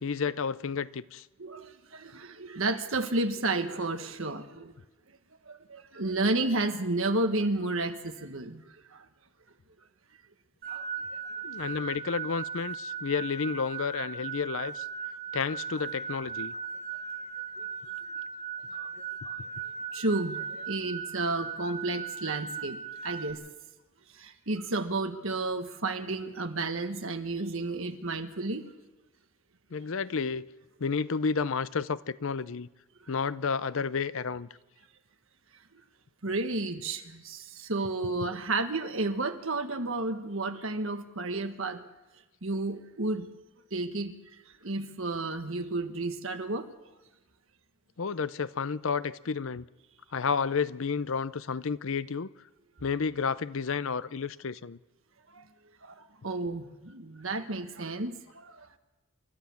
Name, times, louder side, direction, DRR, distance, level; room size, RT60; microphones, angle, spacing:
voice 1, 0.0-1.3 11.4-14.8 15.3-16.5 29.7-30.5 30.8-32.7 33.1-34.5 48.0-49.6 50.1-52.3 52.8-54.8, left 5 dB, 60° left, 0.6 m, -31 dB
voice 2, 1.4-4.7 5.5-8.6 10.7-10.8 18.8-18.9 19.9-20.4 20.7-22.8 23.0-23.4 24.2-28.6 36.2-41.8 42.4-43.3 43.7-44.1 44.6-46.6 55.3-55.4 55.8-55.9 56.2-58.5, right 2 dB, 60° right, 1.5 m, -31 dB
sound 1, 10.6-23.3, right 6 dB, 45° right, 4.5 m, -38 dB
29.5 x 13.0 x 7.2 m
head